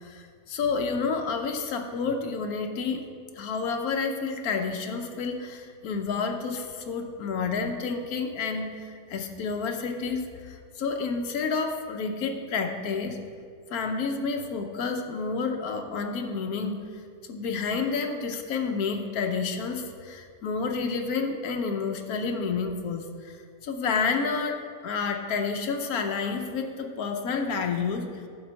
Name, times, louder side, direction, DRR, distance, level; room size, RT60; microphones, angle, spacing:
voice 1, 0.0-3.0 3.3-13.2 13.7-16.8 17.3-23.4 23.6-28.1, left 5 dB, 70° left, 4 dB, 1.3 m, -30 dB
11.0 x 4.0 x 7.4 m, 2.1 s
omnidirectional pair, 1.7 m